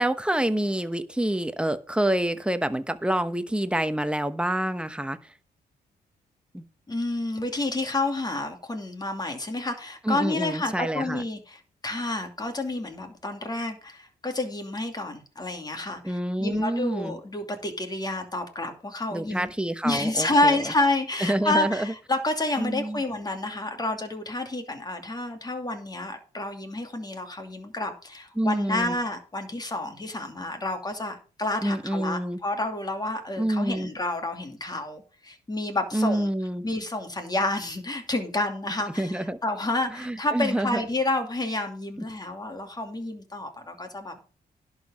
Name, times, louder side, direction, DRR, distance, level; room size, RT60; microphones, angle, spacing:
voice 1, 0.0-5.3 6.5-6.6 10.0-11.2 16.0-17.2 19.1-20.7 21.2-21.9 22.6-23.0 28.4-29.0 31.6-32.4 33.4-33.9 35.9-36.6 39.0-39.4 40.0-40.8, right 1 dB, 5° right, 10 dB, 1.0 m, -27 dB
voice 2, 6.9-19.5 19.8-36.3 36.6-44.1, left 2 dB, 25° left, 5 dB, 2.6 m, -29 dB
11.0 x 4.9 x 7.4 m, 0.37 s
cardioid pair, 90°, 17 cm